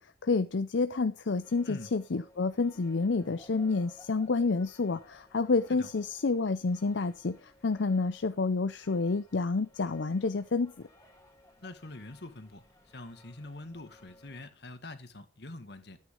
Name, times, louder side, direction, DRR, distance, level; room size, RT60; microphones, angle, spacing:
voice 1, 0.0-10.7, left 3 dB, 90° left, 0.6 m, -29 dB
sound 1, 1.2-14.5, left 1 dB, 20° left, 2.8 m, -59 dB
voice 2, 11.6-12.6 12.9-16.0, left 2 dB, 65° left, 1.9 m, -45 dB
13.5 x 9.4 x 5.3 m
head